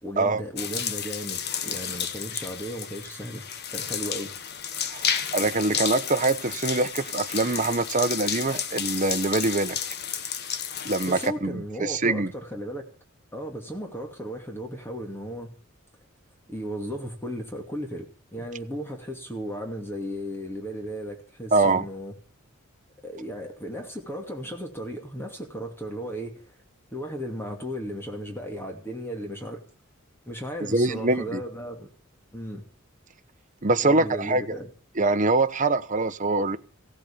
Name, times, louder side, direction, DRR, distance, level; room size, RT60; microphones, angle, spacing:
voice 1, 0.0-3.4 3.7-4.3 11.1-12.8 13.3-15.5 16.5-22.1 23.0-26.6 26.9-29.6 30.3-31.9 32.3-32.6 33.8-34.7, equal, 10° left, 2.5 m, -35 dB
sound 1, 0.6-11.3, left 8 dB, 50° left, 1.4 m, -32 dB
voice 2, 4.9-9.8 10.8-12.3 21.5-21.8 30.7-31.4 33.6-34.4 35.0-36.6, right 3 dB, 35° right, 1.0 m, -24 dB
16.5 x 8.1 x 8.7 m
head